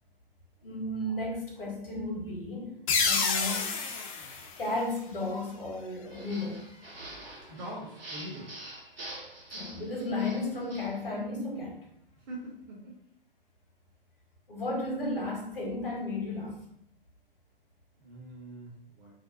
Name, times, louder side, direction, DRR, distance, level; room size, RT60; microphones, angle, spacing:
voice 1, 0.6-2.7 3.0-3.7 4.6-6.6 9.5-11.9 14.5-16.6, left 2 dB, 70° left, -1 dB, 1.1 m, -34 dB
sound 1, 2.9-5.4, left 5 dB, 35° left, 0.5 m, -30 dB
sound 2, 6.1-11.0, right 1 dB, 85° right, 0.7 m, -45 dB
voice 2, 7.5-8.5 12.3-13.0 18.0-18.7 19.0-19.1, right 1 dB, 25° right, -3 dB, 0.7 m, -42 dB
2.6 x 2.1 x 2.5 m, 0.73 s
figure-of-eight pair, 120°, 29 cm